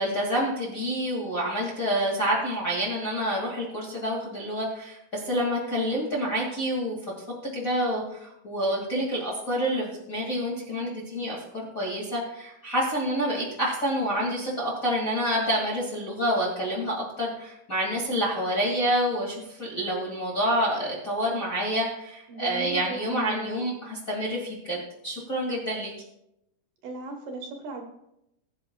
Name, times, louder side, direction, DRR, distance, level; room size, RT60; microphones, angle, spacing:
voice 1, 0.0-7.0 7.5-24.8 25.0-25.9, equal, 25° left, -4 dB, 1.9 m, -28 dB
voice 2, 22.3-23.5 26.8-27.8, right 1 dB, 65° right, 1 dB, 2.9 m, -36 dB
20.5 x 9.8 x 2.4 m, 0.82 s
omnidirectional pair, 4.7 m